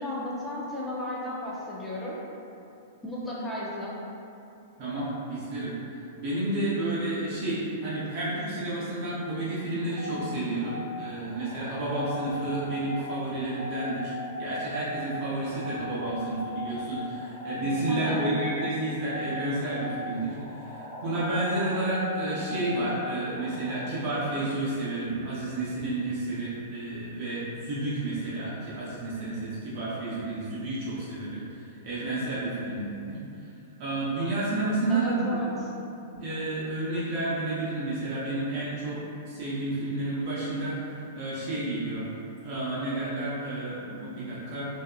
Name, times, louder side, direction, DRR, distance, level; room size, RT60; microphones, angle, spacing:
voice 1, 0.0-2.2 3.0-3.9 17.9-18.3 34.9-35.5, left 1 dB, 10° left, -7 dB, 0.5 m, -34 dB
voice 2, 4.8-5.7 6.2-14.1 14.4-33.2 33.8-35.6 36.2-39.0 39.3-42.0 42.4-44.7, right 2 dB, 45° right, -9 dB, 0.7 m, -31 dB
sound 1, 9.8-23.8, left 2 dB, 40° left, 1.2 m, -39 dB
2.7 x 2.3 x 2.3 m, 2.7 s
hypercardioid pair, 135°, 0 cm